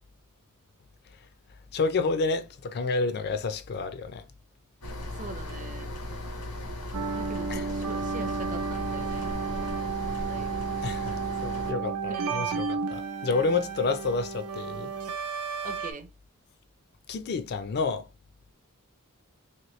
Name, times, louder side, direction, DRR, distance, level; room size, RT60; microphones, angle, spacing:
voice 1, 1.7-4.2 7.5-7.7 10.8-14.9 17.1-18.1, left 4 dB, 45° left, 0.4 m, -29 dB
sound 1, 4.8-11.7, left 1 dB, 85° left, 1.3 m, -37 dB
voice 2, 5.2-5.9 7.1-9.7 10.0-10.6 12.1-12.7 15.6-16.1, right 3 dB, 35° right, 0.5 m, -42 dB
sound 2, 6.9-15.9, right 5 dB, 85° right, 0.5 m, -32 dB
3.0 x 2.9 x 3.0 m
head